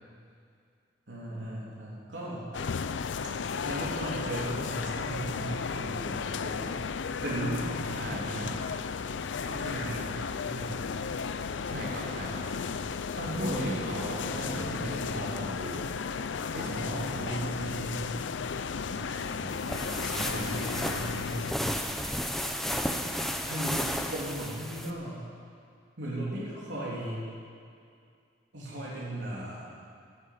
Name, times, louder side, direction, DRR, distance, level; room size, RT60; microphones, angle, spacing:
voice 1, 1.1-2.4 3.6-6.8 7.2-8.5 9.4-10.8 13.2-13.8 14.4-15.6 16.6-18.1 20.2-21.8 23.4-23.8 24.1-25.3 26.0-27.2 28.5-29.7, right 1 dB, 85° right, -7 dB, 3.3 m, -37 dB
sound 1, 2.5-21.5, left 5 dB, 85° left, 0.5 m, -34 dB
voice 2, 7.9-8.6 11.6-12.5 13.4-15.9 16.5-17.5 18.8-19.8 20.1-21.1, right 1 dB, 65° right, -4 dB, 3.8 m, -39 dB
sound 2, 19.5-24.9, equal, ahead, 0.8 m, -33 dB
17.5 x 8.5 x 8.5 m, 2.3 s
head